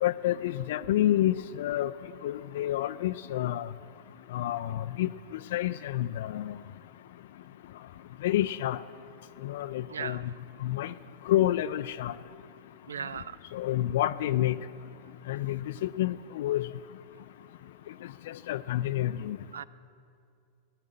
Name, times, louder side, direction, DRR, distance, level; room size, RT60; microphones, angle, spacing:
voice 1, 0.0-1.9 2.2-3.7 4.3-5.1 5.5-6.6 8.2-8.8 9.4-10.2 10.6-10.9 11.3-12.1 13.5-14.6 15.3-16.7 18.3-19.4, left 13 dB, 55° left, 13 dB, 0.3 m, -28 dB
voice 2, 9.9-10.2 12.9-13.4 19.5-19.6, right 7 dB, 70° right, 19 dB, 0.4 m, -36 dB
15.5 x 10.5 x 8.5 m, 2.4 s
figure-of-eight pair, 90°, 0 cm